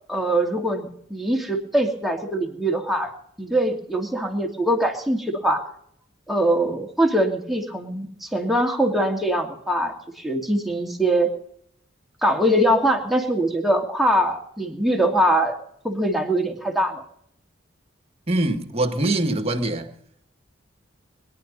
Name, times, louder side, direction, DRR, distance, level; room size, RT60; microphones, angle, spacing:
voice 1, 0.1-3.1 3.4-5.6 6.3-11.3 12.2-15.6 15.8-17.0, right 1 dB, ahead, 2.4 m, -22 dB
voice 2, 18.3-19.9, right 2 dB, 35° right, 1.7 m, -23 dB
22.0 x 11.0 x 5.4 m
head